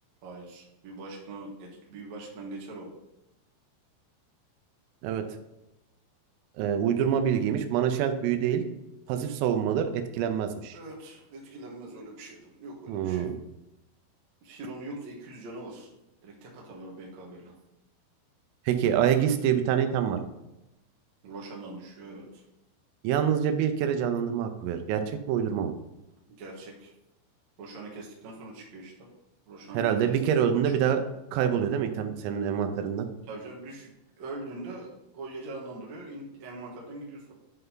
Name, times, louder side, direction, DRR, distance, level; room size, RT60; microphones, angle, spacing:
voice 1, 0.2-2.9 10.7-13.3 14.4-15.9 16.2-17.5 21.2-22.4 26.3-26.9 27.6-29.1 29.5-31.0 33.3-37.3, right 2 dB, 65° right, -2 dB, 1.8 m, -42 dB
voice 2, 6.6-8.6 9.1-10.8 12.9-13.4 18.7-20.2 23.0-25.0 25.3-25.7 29.7-31.0 31.3-33.1, right 9 dB, 85° right, 7 dB, 3.4 m, -26 dB
11.0 x 5.5 x 3.9 m, 0.91 s
omnidirectional pair, 5.8 m